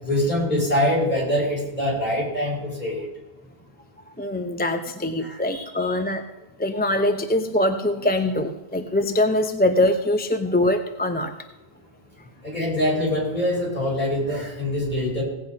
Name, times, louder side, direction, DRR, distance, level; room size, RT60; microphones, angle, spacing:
voice 1, 0.0-3.1 5.2-5.9 12.4-15.2, left 1 dB, 40° left, -4 dB, 6.1 m, -24 dB
voice 2, 4.2-6.2 6.6-11.3, left 1 dB, 10° left, 6 dB, 0.7 m, -23 dB
17.5 x 8.5 x 5.3 m, 1.0 s
omnidirectional pair, 1.1 m